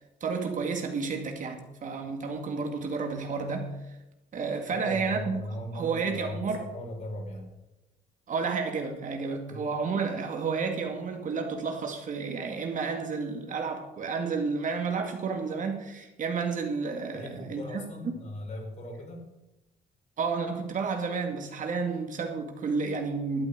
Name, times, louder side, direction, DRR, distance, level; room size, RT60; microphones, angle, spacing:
voice 1, 0.2-3.8 4.3-5.4 5.7-6.6 8.3-18.1 20.2-23.5, right 5 dB, 50° right, 2.2 m, -31 dB
voice 2, 4.7-7.5 9.5-9.7 17.1-19.3, left 1 dB, 45° left, 4.6 m, -38 dB
12.0 x 8.7 x 6.6 m
cardioid pair, 85°, 17 cm